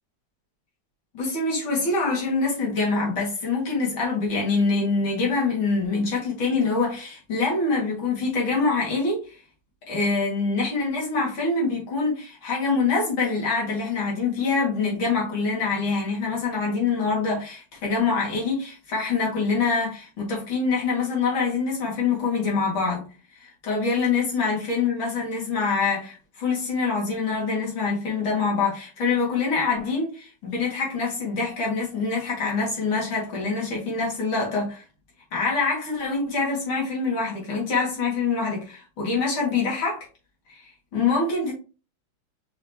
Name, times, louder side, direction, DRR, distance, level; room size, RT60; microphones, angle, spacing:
voice 1, 1.1-9.4 9.9-23.1 23.4-34.8 35.3-40.1 40.5-41.5, left 4 dB, 80° left, 2.7 m, -25 dB
5.4 x 3.5 x 2.7 m
omnidirectional pair, 2.1 m